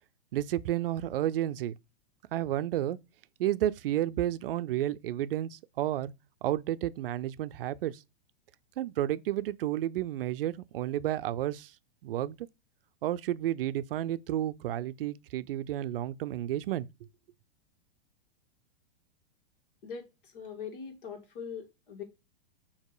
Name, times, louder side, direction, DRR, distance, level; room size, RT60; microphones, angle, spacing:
voice 1, 0.3-1.7 2.3-3.0 3.4-6.1 6.4-8.0 8.8-11.7 12.0-12.4 13.0-16.9, right 12 dB, 65° right, 0.5 m, -31 dB
voice 2, 19.8-22.0, left 6 dB, 60° left, 1.9 m, -42 dB
6.6 x 2.9 x 4.8 m
supercardioid pair, 165°, 30 cm